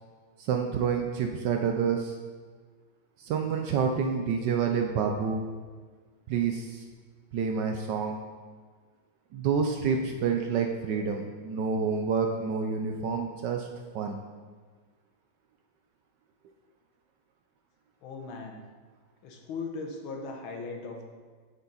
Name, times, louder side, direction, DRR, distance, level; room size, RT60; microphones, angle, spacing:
voice 1, 0.4-2.2 3.2-5.4 6.3-6.8 7.3-8.2 9.3-13.7 13.9-14.2, right 6 dB, 75° right, 4 dB, 1.1 m, -28 dB
voice 2, 18.0-18.6 19.2-21.1, left 4 dB, 80° left, 3 dB, 1.7 m, -38 dB
6.8 x 6.7 x 4.0 m, 1.5 s
omnidirectional pair, 2.3 m